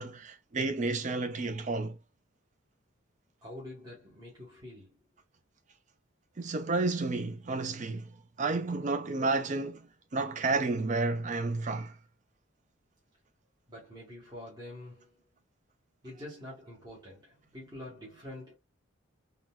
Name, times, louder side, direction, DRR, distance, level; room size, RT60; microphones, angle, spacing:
voice 1, 0.0-2.0 6.4-8.1 8.4-9.9 10.1-11.9, right 3 dB, 35° right, 0.4 m, -31 dB
voice 2, 3.4-4.9 13.7-15.2 16.0-18.5, left 1 dB, 20° right, 1.0 m, -46 dB
3.7 x 2.2 x 2.3 m
head